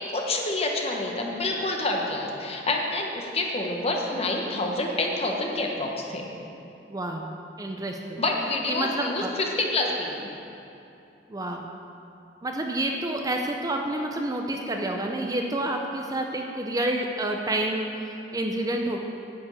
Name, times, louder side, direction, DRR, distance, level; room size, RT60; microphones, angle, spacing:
voice 1, 0.0-6.3 8.2-10.3, left 2 dB, 35° left, 0 dB, 1.1 m, -28 dB
voice 2, 6.9-7.3 7.6-8.2 8.7-9.3 11.3-11.7 12.4-19.0, right 1 dB, 20° right, 2 dB, 0.6 m, -29 dB
9.7 x 5.2 x 8.2 m, 2.8 s
head